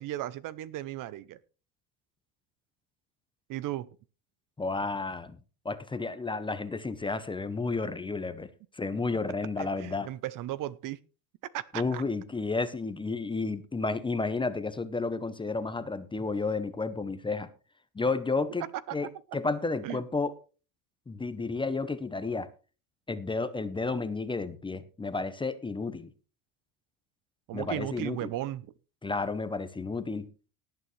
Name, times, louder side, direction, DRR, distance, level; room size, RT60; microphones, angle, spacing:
voice 1, 0.0-1.4 3.5-3.9 9.6-11.0 11.5-12.0 18.9-19.0 19.8-20.0 27.5-28.6, right 14 dB, 45° right, 19 dB, 0.6 m, -36 dB
voice 2, 4.6-5.4 5.6-10.1 11.7-17.5 17.9-20.3 21.1-22.5 23.1-26.1 27.5-28.3 29.0-30.3, left 3 dB, 10° left, 12 dB, 0.7 m, -32 dB
18.0 x 9.2 x 3.2 m, 0.34 s
cardioid pair, 135°, 46 cm